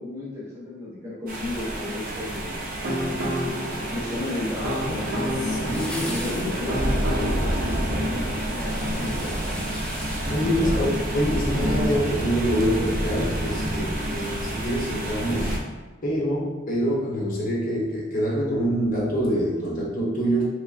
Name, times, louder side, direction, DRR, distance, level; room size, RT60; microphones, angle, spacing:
voice 1, 0.0-2.9 3.9-5.7 6.1-9.8 10.4-10.9, left 2 dB, 15° right, -7 dB, 0.9 m, -34 dB
sound 1, 1.3-15.6, right 1 dB, 45° right, 0.5 m, -28 dB
sound 2, 2.4-8.2, equal, 70° right, 0.8 m, -31 dB
voice 2, 5.4-6.2 10.3-15.6 16.0-20.5, equal, 45° left, -5 dB, 0.7 m, -25 dB
sound 3, 5.6-11.4 11.8-11.9, left 1 dB, 5° left, 0.4 m, -41 dB
3.1 x 3.1 x 2.5 m, 1.2 s
head